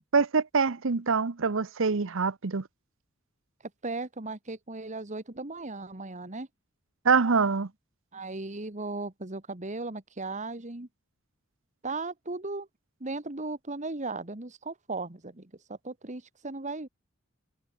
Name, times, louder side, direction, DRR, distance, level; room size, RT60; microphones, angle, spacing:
voice 1, 0.1-2.6 7.0-7.7, right 5 dB, 65° right, 0.8 m, -25 dB
voice 2, 3.6-6.5 8.1-10.9 11.8-12.7 13.0-16.9, right 3 dB, 35° right, 1.8 m, -37 dB
head